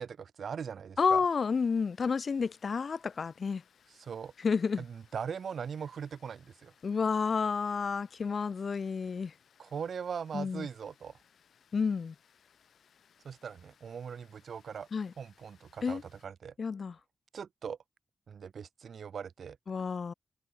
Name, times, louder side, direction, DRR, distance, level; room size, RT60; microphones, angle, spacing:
voice 1, 0.0-1.2 4.0-4.3 4.8-6.7 9.6-11.1 13.2-14.9 15.2-16.5 17.3-17.8 18.3-19.6, right 7 dB, 70° right, 0.5 m, -40 dB
voice 2, 1.0-3.6 4.4-4.8 6.8-9.3 10.3-10.7 11.7-12.1 14.9-15.1 15.8-16.0 16.6-16.9 19.7-20.1, left 5 dB, 50° left, 0.3 m, -30 dB
Water, 1.2-16.2, left 7 dB, 85° left, 7.6 m, -66 dB
wide cardioid pair, 145°, 0 cm